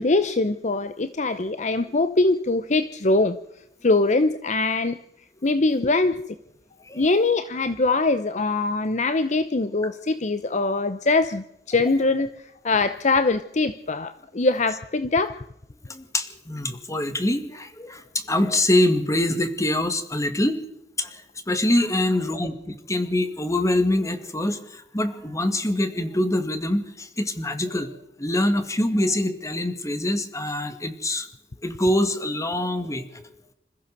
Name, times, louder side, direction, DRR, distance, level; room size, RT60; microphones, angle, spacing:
voice 1, 0.0-3.4 3.8-5.0 5.4-6.1 6.9-12.3 12.6-15.3, left 3 dB, 45° left, 12 dB, 0.8 m, -22 dB
voice 2, 15.9-20.6 21.0-21.2 21.5-31.3 31.6-33.2, left 1 dB, 20° left, 9 dB, 2.1 m, -24 dB
26.5 x 15.0 x 6.8 m, 0.79 s
head